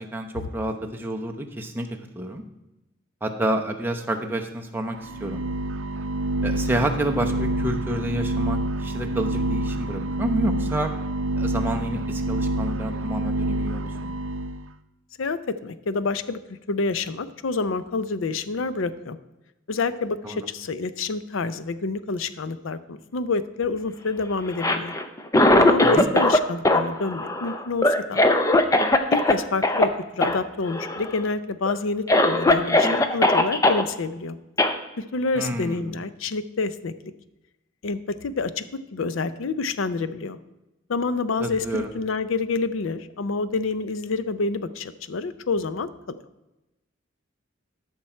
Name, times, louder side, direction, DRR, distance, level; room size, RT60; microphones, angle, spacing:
voice 1, 0.0-2.4 3.2-5.4 6.4-10.9 11.3-14.1 20.2-20.4 25.8-26.1 35.3-36.0 41.4-41.9, right 1 dB, 10° right, 2 dB, 0.8 m, -29 dB
sound 1, 5.0-14.6, right 1 dB, 80° right, 0.6 m, -27 dB
voice 2, 15.2-16.4 16.7-19.2 19.7-24.9 25.6-28.2 29.1-34.4 35.0-36.9 37.8-38.6 38.9-40.4 40.9-46.3, left 3 dB, 80° left, 14 dB, 0.5 m, -28 dB
Cough, 24.5-26.4 26.6-29.3 29.6-29.9 30.2-30.4 30.7-31.2 31.7-31.8 32.1-33.8 34.6-34.7, left 1 dB, 15° left, 0.6 m, -19 dB
12.5 x 6.1 x 4.4 m, 0.98 s
head